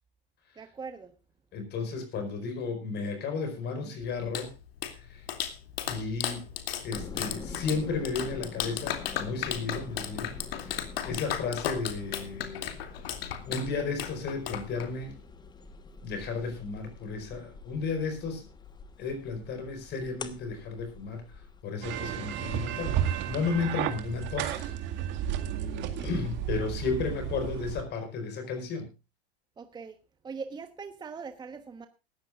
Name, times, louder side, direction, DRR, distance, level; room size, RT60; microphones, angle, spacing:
voice 1, 0.6-1.1 29.6-30.0 30.2-31.9, right 5 dB, 15° right, 9 dB, 1.2 m, -41 dB
voice 2, 1.5-4.5 4.9-5.3 5.9-6.5 6.8-12.7 13.0-13.2 13.4-15.2 16.0-18.5 19.0-24.7 26.0-28.9, left 4 dB, 30° left, 7 dB, 4.8 m, -34 dB
Clapping, 4.0-15.2, left 10 dB, 65° left, 2.6 m, -36 dB
sound 1, 6.9-21.6, left 4 dB, 15° left, 1.3 m, -46 dB
sound 2, 21.8-27.8, right 10 dB, 35° right, 2.1 m, -32 dB
18.5 x 14.5 x 2.5 m, 0.29 s
hypercardioid pair, 115°, 32 cm